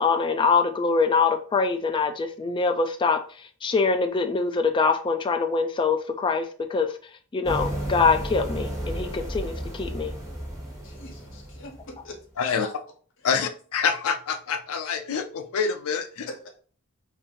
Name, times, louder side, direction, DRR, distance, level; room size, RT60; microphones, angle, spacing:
voice 1, 0.0-3.2 3.6-7.0 7.3-10.2, left 4 dB, 25° left, 0.3 m, -24 dB
sound 1, 7.4-12.2, right 1 dB, 15° right, 0.9 m, -33 dB
voice 2, 10.8-12.7 16.3-16.5, left 2 dB, 60° left, 0.8 m, -41 dB
voice 3, 12.4-12.7 13.2-16.3, left 6 dB, 85° left, 0.4 m, -26 dB
2.6 x 2.5 x 3.6 m
head